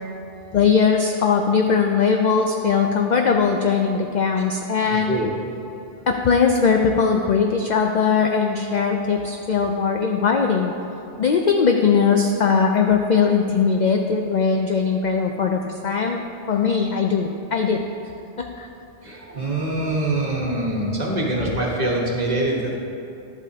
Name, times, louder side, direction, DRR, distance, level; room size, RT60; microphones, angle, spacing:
voice 1, 0.5-5.1 6.1-10.7 11.2-16.2 16.5-17.8 18.4-18.7, left 5 dB, 60° left, 3 dB, 0.4 m, -20 dB
voice 2, 4.8-5.3 19.0-22.7, right 1 dB, 35° right, -3 dB, 1.3 m, -24 dB
11.5 x 8.1 x 2.8 m, 2.7 s
omnidirectional pair, 1.2 m